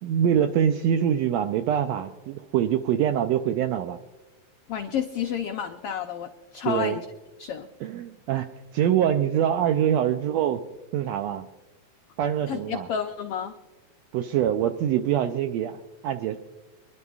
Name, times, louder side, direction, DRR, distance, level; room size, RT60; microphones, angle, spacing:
voice 1, 0.0-4.0 6.6-7.0 7.8-10.6 10.9-11.5 12.2-12.9 14.1-16.4, right 9 dB, 80° right, 7 dB, 1.5 m, -24 dB
voice 2, 4.7-7.1 7.4-7.7 12.5-13.5, left 8 dB, 90° left, 5 dB, 1.3 m, -30 dB
26.5 x 11.0 x 2.4 m, 1.1 s
omnidirectional pair, 3.5 m